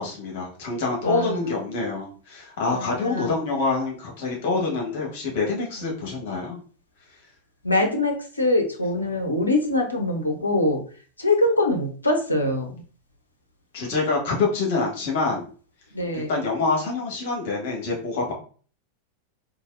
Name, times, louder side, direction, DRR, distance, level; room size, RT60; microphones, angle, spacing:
voice 1, 0.0-6.6 13.7-15.5 16.1-18.3, left 3 dB, 50° left, -1 dB, 1.4 m, -26 dB
voice 2, 1.0-1.4 2.6-3.3 5.8-5.9 7.6-10.8 11.2-12.8 15.9-16.3, left 2 dB, 80° left, 3 dB, 0.7 m, -23 dB
4.0 x 2.7 x 2.6 m, 0.41 s
figure-of-eight pair, 90°, 0 cm